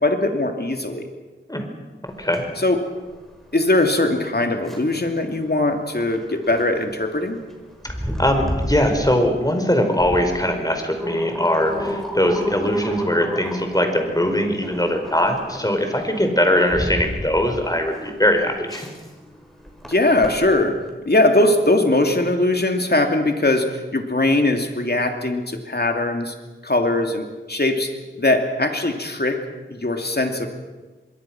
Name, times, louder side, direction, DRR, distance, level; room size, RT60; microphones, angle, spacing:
voice 1, 0.0-1.1 2.6-2.8 3.5-7.4 19.8-20.8 21.1-23.6 23.9-26.3 26.6-27.9 28.2-29.4 29.7-30.5, left 2 dB, 50° left, 4 dB, 2.8 m, -20 dB
voice 2, 2.0-2.4 7.8-7.9 8.2-18.9, left 1 dB, 20° left, 5 dB, 4.8 m, -21 dB
sound 1, 2.1-20.9, equal, ahead, 6.3 m, -33 dB
25.5 x 22.0 x 6.1 m, 1.2 s
wide cardioid pair, 45°, 21 cm